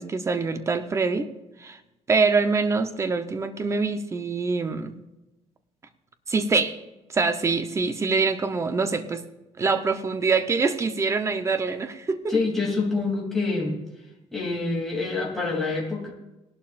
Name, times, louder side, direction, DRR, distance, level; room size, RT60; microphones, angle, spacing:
voice 1, 0.0-1.3 1.6-1.8 2.1-5.0 6.3-6.8 7.1-9.2 9.6-12.3, right 4 dB, 25° right, 9 dB, 0.9 m, -24 dB
voice 2, 12.3-13.7 14.3-16.1, left 3 dB, 5° left, -4 dB, 3.0 m, -26 dB
18.0 x 11.5 x 2.6 m, 1.0 s
cardioid pair, 155°, 12 cm